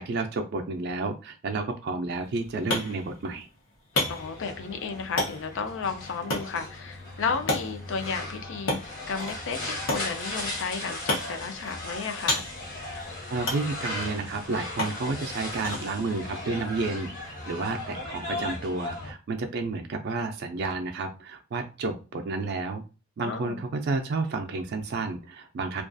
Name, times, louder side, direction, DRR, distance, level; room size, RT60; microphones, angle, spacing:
voice 1, 0.0-3.5 13.3-22.8 23.2-25.8, right 3 dB, 55° right, 0.3 m, -31 dB
sound 1, 2.1-17.7, left 2 dB, 85° left, 0.9 m, -35 dB
sound 2, 3.9-19.1, left 2 dB, 45° left, 0.8 m, -37 dB
voice 2, 4.1-12.4 23.2-23.6, left 5 dB, 65° left, 0.4 m, -33 dB
2.3 x 2.3 x 2.5 m
head